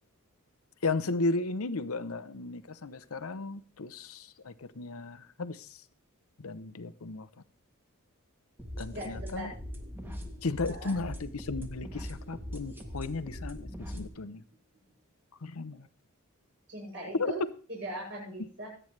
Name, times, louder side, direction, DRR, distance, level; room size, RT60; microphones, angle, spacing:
voice 1, 0.8-5.7 6.4-7.3 8.8-9.5 10.4-14.4 15.4-15.9 17.2-17.3, left 3 dB, 70° left, 0.8 m, -35 dB
sound 1, 8.6-14.1, equal, 10° right, 1.4 m, -41 dB
voice 2, 8.9-9.5 10.7-10.9 12.6-13.0 16.7-17.4 17.7-18.7, right 1 dB, 60° right, 7.6 m, -41 dB
24.0 x 9.0 x 3.3 m
head